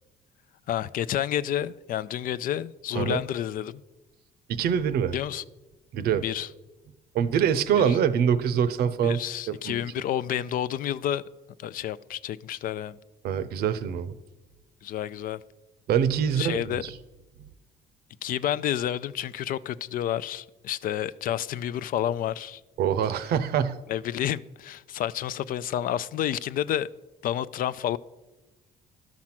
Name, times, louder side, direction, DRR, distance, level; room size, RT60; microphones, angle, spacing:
voice 1, 0.7-3.8 5.1-5.4 6.2-6.5 7.8-7.9 9.0-11.2 11.6-13.0 14.8-15.4 16.4-16.8 18.2-22.6 23.9-26.9 27.2-28.0, left 11 dB, 55° left, 0.4 m, -30 dB
voice 2, 4.5-5.2 5.9-6.2 7.1-9.2 9.5-9.8 13.2-14.1 15.9-16.9 22.8-23.8, right 8 dB, 70° right, 0.7 m, -24 dB
12.0 x 6.1 x 5.9 m
cardioid pair, 110°, 17 cm